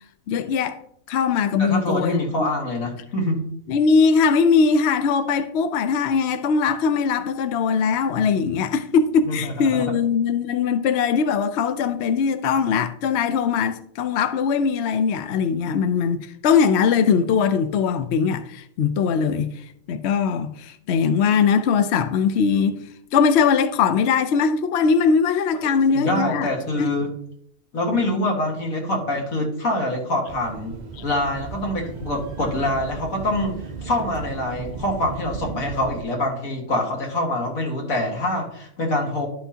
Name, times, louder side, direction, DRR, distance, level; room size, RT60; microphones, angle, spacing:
voice 1, 0.3-0.8 1.1-2.3 3.7-22.8 23.1-26.5 26.8-26.9, left 6 dB, 60° left, 0.8 m, -21 dB
voice 2, 1.6-3.4 9.3-9.8 25.5-25.6 25.9-27.1 27.7-30.8 31.0-39.3, left 1 dB, 85° left, 2.2 m, -25 dB
sound 1, 30.2-36.0, right 5 dB, 55° right, 0.5 m, -35 dB
11.5 x 5.8 x 2.8 m
omnidirectional pair, 1.4 m